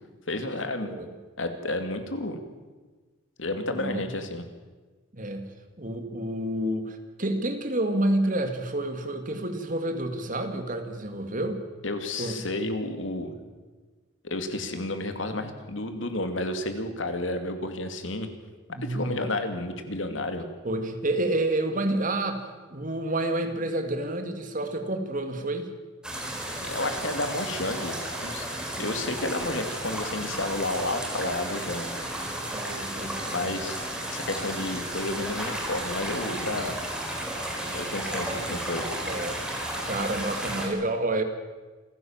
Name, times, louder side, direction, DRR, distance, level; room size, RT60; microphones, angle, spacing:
voice 1, 0.3-0.9 1.4-2.4 3.4-4.4 11.8-13.3 14.2-18.3 18.8-20.5 26.6-28.5 28.8-31.9 33.2-33.8 34.1-36.8 37.7-38.9, left 2 dB, 90° left, 7 dB, 2.6 m, -31 dB
voice 2, 3.7-4.1 5.1-11.6 12.2-12.4 18.7-19.3 20.6-25.7 28.7-28.9 32.5-33.6 36.5-36.8 38.1-38.5 39.1-39.4 39.8-41.2, right 1 dB, 45° right, 6 dB, 2.4 m, -29 dB
sound 1, 26.0-40.7, right 1 dB, 5° right, 4.1 m, -33 dB
27.5 x 15.5 x 7.4 m, 1.3 s
head